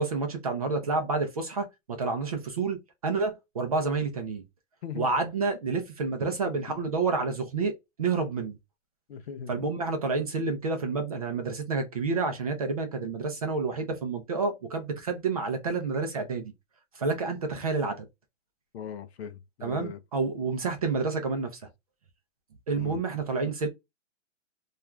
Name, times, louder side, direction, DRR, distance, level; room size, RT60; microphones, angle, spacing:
voice 1, 0.0-1.7 2.0-2.8 3.0-4.4 5.0-8.6 9.5-16.5 17.0-18.0 19.6-21.5 22.7-23.7, right 4 dB, 30° right, 0.4 m, -29 dB
voice 2, 6.2-6.8 9.1-9.6 18.7-20.0 22.8-23.0, left 8 dB, 55° left, 0.5 m, -40 dB
2.3 x 2.3 x 2.9 m
hypercardioid pair, 150°, 38 cm